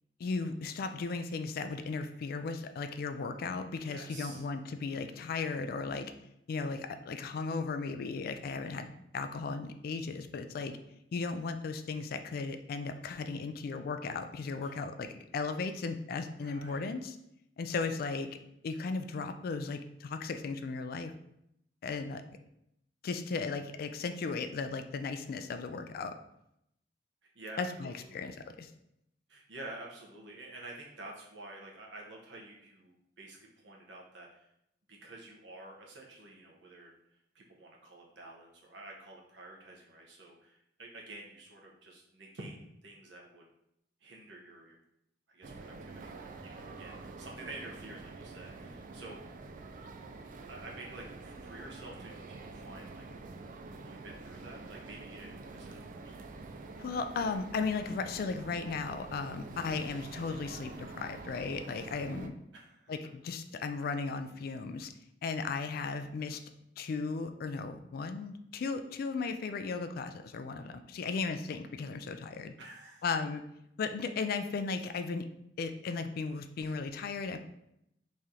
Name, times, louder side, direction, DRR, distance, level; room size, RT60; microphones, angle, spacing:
voice 1, 0.2-6.1 6.5-8.9 9.1-10.8 11.1-17.2 17.6-18.4 18.6-21.1 21.8-22.2 23.0-26.1 27.6-28.7 56.8-62.3 62.9-64.9 65.2-66.4 66.8-72.5 73.0-73.4 73.8-75.3 75.6-77.4, left 4 dB, 55° left, 8 dB, 0.3 m, -36 dB
voice 2, 3.8-4.5 8.6-8.8 14.6-14.8 16.4-16.9 27.2-28.3 29.3-34.5 34.9-36.9 37.3-42.6 42.8-43.4 44.0-44.8 45.3-49.4 50.5-53.1 53.9-56.2 59.5-59.7 62.5-62.9 70.6-70.7 72.6-73.0, right 2 dB, 80° right, -1 dB, 0.9 m, -49 dB
sound 1, 45.4-62.3, right 3 dB, 45° right, 0.3 m, -47 dB
3.1 x 2.8 x 3.6 m, 0.79 s
head